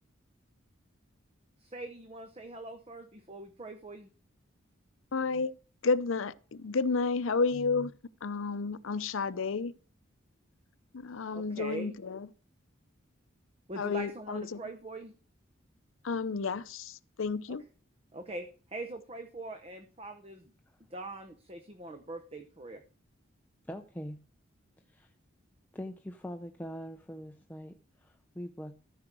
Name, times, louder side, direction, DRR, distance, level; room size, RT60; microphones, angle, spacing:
voice 1, 1.6-4.1 11.3-11.9 13.7-15.1 17.5-17.6 18.1-20.5 20.9-22.8, right 2 dB, 30° right, 0.8 m, -42 dB
voice 2, 5.1-5.5 5.8-7.9 8.2-9.7 10.9-12.3 13.8-14.6 16.0-17.6, left 4 dB, 75° left, 0.6 m, -31 dB
voice 3, 23.7-24.2 24.9-25.1 25.7-28.7, equal, 10° left, 0.5 m, -43 dB
13.5 x 4.9 x 6.1 m
head